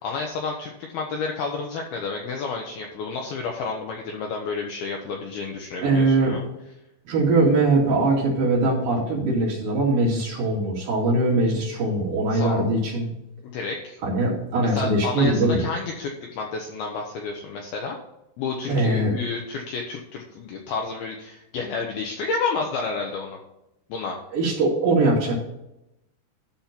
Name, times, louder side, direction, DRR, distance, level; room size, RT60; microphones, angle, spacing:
voice 1, 0.0-6.4 12.3-12.6 13.4-14.0 14.6-16.1 16.4-18.0 18.4-23.4 23.9-24.2, left 4 dB, 75° left, 1 dB, 2.5 m, -30 dB
voice 2, 5.8-6.4 7.1-13.1 14.0-15.6 18.7-19.1 24.3-25.4, right 2 dB, 55° right, -5 dB, 3.7 m, -21 dB
12.5 x 4.3 x 5.9 m, 0.88 s
omnidirectional pair, 5.3 m